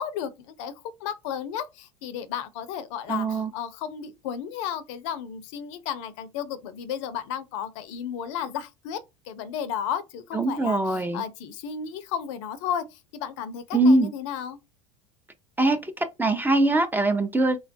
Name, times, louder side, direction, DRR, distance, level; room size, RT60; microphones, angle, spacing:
voice 1, 0.0-14.6, left 8 dB, 65° left, 0.5 m, -33 dB
voice 2, 3.1-3.5 10.3-11.2 13.7-14.1 15.6-17.6, right 2 dB, 10° right, 0.5 m, -22 dB
3.2 x 2.2 x 2.5 m
hypercardioid pair, 90°, 17 cm